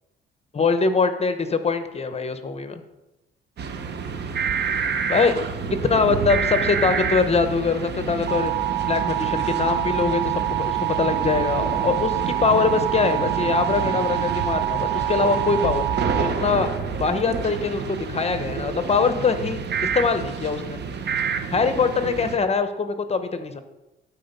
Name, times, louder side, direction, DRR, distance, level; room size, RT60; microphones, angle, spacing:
voice 1, 0.5-2.8 5.1-5.3 5.8-8.5 8.9-16.7 17.0-20.8 21.5-23.6, left 4 dB, 30° left, 9 dB, 0.9 m, -23 dB
sound 1, 3.6-22.4, right 8 dB, 60° right, 1.0 m, -26 dB
12.0 x 4.4 x 5.4 m, 0.99 s
cardioid pair, 90°, 20 cm